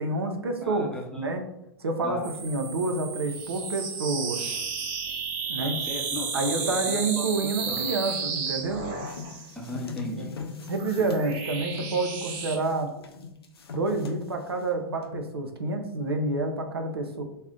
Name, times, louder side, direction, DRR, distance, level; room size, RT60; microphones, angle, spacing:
voice 1, 0.0-1.4 1.8-4.4 5.5-5.8 6.3-8.9 10.2-10.4 10.7-12.9 13.7-17.2, right 3 dB, 90° right, 4 dB, 0.5 m, -28 dB
voice 2, 0.6-1.3 2.0-2.3 5.6-7.3 7.7-7.9 9.6-10.3, left 1 dB, 5° left, -2 dB, 0.6 m, -37 dB
sound 1, 2.2-9.5 10.4-12.6, right 5 dB, 45° right, 0.6 m, -33 dB
sound 2, 8.9-11.9 12.2-14.6 14.9-15.2, left 5 dB, 85° left, 0.4 m, -39 dB
2.4 x 2.1 x 3.5 m, 0.82 s
hypercardioid pair, 105°, 13 cm